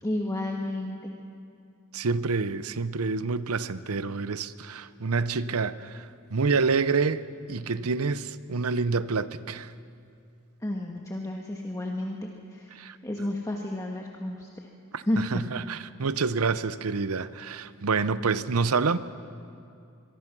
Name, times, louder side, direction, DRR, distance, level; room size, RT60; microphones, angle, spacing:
voice 1, 0.0-1.1 10.6-14.5 15.1-15.4, left 1 dB, 15° left, 1.4 m, -31 dB
voice 2, 1.9-7.2 7.5-9.7 12.7-13.0 14.9-19.0, right 4 dB, 75° right, 0.7 m, -27 dB
23.5 x 23.5 x 6.1 m
head